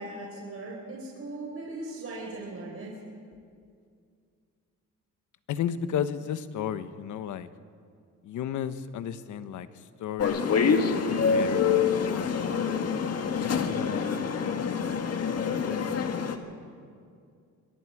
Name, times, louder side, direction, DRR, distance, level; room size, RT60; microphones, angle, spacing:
voice 1, 0.0-3.0, right 2 dB, 50° right, -3 dB, 5.0 m, -39 dB
voice 2, 5.5-7.5 8.2-10.4 11.2-12.5 13.2-14.1 14.5-15.0, left 9 dB, 80° left, 11 dB, 1.2 m, -34 dB
sound 1, 10.2-16.4, left 6 dB, 55° left, 1.8 m, -26 dB
25.0 x 22.5 x 4.9 m, 2.3 s
cardioid pair, 90°, 30 cm